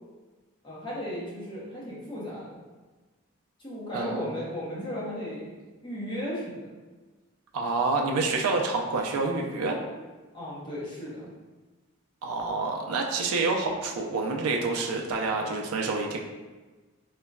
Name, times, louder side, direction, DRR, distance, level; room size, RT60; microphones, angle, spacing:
voice 1, 0.6-2.5 3.6-5.5 5.8-6.8 10.3-11.3, equal, 20° left, -7 dB, 0.7 m, -35 dB
voice 2, 7.5-9.8 12.2-16.2, right 3 dB, 80° right, 1 dB, 0.4 m, -28 dB
3.8 x 2.1 x 2.2 m, 1.3 s
head